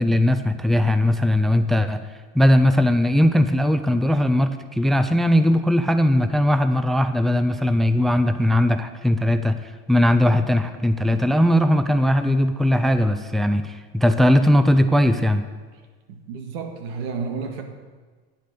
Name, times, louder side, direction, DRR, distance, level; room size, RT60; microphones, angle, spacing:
voice 1, 0.0-2.0 2.3-15.5, left 1 dB, ahead, 10 dB, 0.4 m, -19 dB
voice 2, 16.1-17.6, right 5 dB, 85° right, 5 dB, 1.8 m, -31 dB
10.0 x 8.3 x 6.7 m, 1.4 s
supercardioid pair, 125°, 29 cm